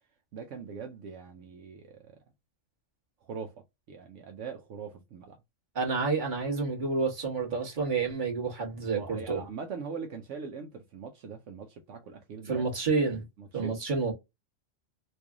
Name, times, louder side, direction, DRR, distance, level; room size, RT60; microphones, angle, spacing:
voice 1, 0.3-2.2 3.2-5.4 8.9-12.6 13.4-13.8, right 5 dB, 75° right, 1.0 m, -42 dB
voice 2, 5.7-9.4 12.4-13.2 13.5-14.1, right 4 dB, 40° right, 1.5 m, -29 dB
3.3 x 2.6 x 3.4 m
omnidirectional pair, 1.3 m